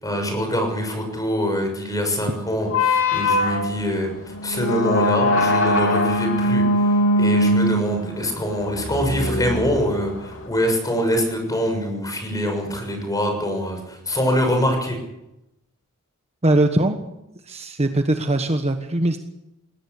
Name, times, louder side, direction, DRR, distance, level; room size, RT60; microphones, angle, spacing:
voice 1, 0.0-4.1 4.4-6.6 7.1-15.0, equal, 15° left, 4 dB, 6.7 m, -24 dB
sound 1, 2.7-10.5, left 1 dB, 65° left, 3.0 m, -21 dB
voice 2, 16.4-17.0 17.5-19.2, right 1 dB, 30° right, 6 dB, 1.3 m, -21 dB
21.0 x 18.0 x 8.4 m, 0.89 s
head